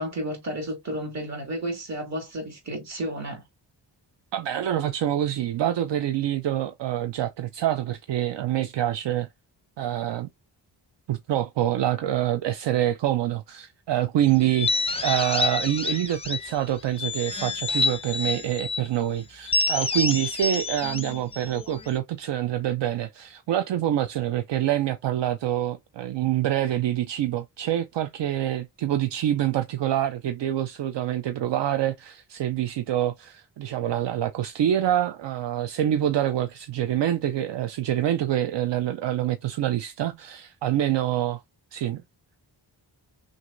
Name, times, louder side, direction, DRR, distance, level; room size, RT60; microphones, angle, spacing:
voice 1, 0.0-3.4, right 1 dB, 35° right, 2.3 m, -32 dB
voice 2, 4.3-9.3 9.8-10.3 11.1-41.4 41.7-42.0, right 11 dB, 70° right, 0.6 m, -26 dB
sound 1, 14.5-16.6 17.0-18.9 19.5-22.0, left 3 dB, 15° left, 0.5 m, -28 dB
6.1 x 2.7 x 2.6 m
wide cardioid pair, 180°, 44 cm